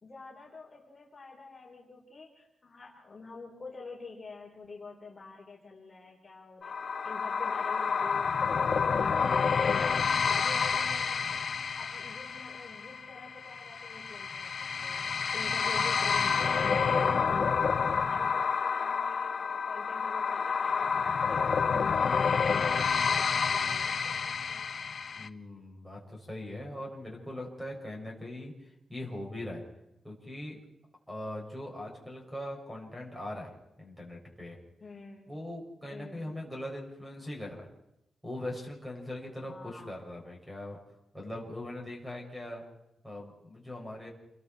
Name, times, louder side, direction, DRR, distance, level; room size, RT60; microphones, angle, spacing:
voice 1, 0.0-6.8 7.0-10.0 10.2-11.4 11.8-21.5 21.8-24.8 34.8-35.2 35.9-36.3 39.4-40.0, left 3 dB, 25° left, -2 dB, 4.5 m, -48 dB
sound 1, 6.6-25.3, left 6 dB, 45° left, 0.8 m, -29 dB
voice 2, 25.2-29.6 30.0-30.6 31.1-33.5 33.8-34.6 35.3-37.7 38.2-40.8 41.1-42.6 43.0-44.1, left 1 dB, 5° right, 0 dB, 6.7 m, -41 dB
29.5 x 22.0 x 4.6 m, 0.84 s
wide cardioid pair, 160°, 0 cm